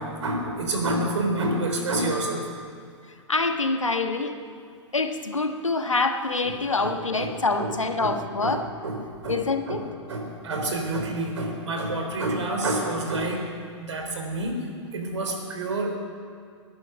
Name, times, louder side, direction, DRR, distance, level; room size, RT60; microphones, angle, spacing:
voice 1, 0.0-2.4 6.8-6.9 7.2-7.3 7.6-7.7 8.0-8.1 8.4-8.6 8.8-9.0 9.2-9.4 9.7-9.8 10.1-13.4 13.8-14.6 14.9-16.0, right 2 dB, 70° right, 2 dB, 3.6 m, -28 dB
voice 2, 3.3-4.3 4.9-8.6 9.3-9.8, left 3 dB, 85° left, 6 dB, 1.3 m, -25 dB
22.0 x 11.0 x 5.8 m, 2.1 s
figure-of-eight pair, 105°, 16 cm